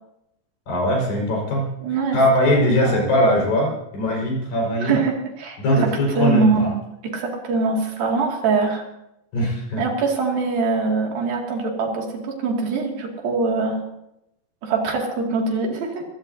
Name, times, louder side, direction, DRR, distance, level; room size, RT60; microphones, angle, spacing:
voice 1, 0.7-1.7 2.1-5.0 5.6-6.7 9.3-9.8, equal, 75° left, -2 dB, 6.9 m, -20 dB
voice 2, 1.8-2.2 2.8-2.9 4.8-6.8 7.0-8.8 9.8-13.8 14.6-16.0, right 4 dB, 75° right, 0 dB, 4.2 m, -23 dB
23.5 x 16.5 x 2.8 m, 0.83 s
omnidirectional pair, 4.2 m